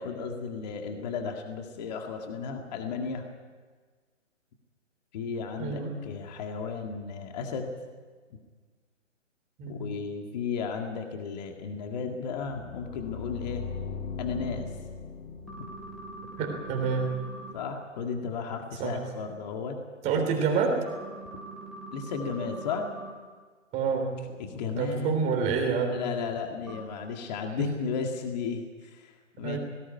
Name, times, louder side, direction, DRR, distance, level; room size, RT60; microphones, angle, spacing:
voice 1, 0.0-3.3 5.1-7.7 9.7-13.6 14.2-14.7 17.5-19.8 21.9-22.9 24.4-25.3 25.9-29.1 29.4-29.6, left 5 dB, 35° left, 3 dB, 2.0 m, -34 dB
voice 2, 5.6-5.9 9.6-9.9 16.4-17.1 18.8-19.0 20.0-20.8 23.7-24.2 24.8-26.0 27.6-27.7 29.4-29.6, right 5 dB, 20° right, 3 dB, 3.4 m, -28 dB
sound 1, 12.3-17.3, left 5 dB, 15° left, 1.4 m, -39 dB
sound 2, 15.5-17.5 20.9-23.1 26.7-26.8, right 2 dB, ahead, 3.1 m, -43 dB
18.5 x 17.5 x 9.4 m, 1.5 s
figure-of-eight pair, 145°, 38 cm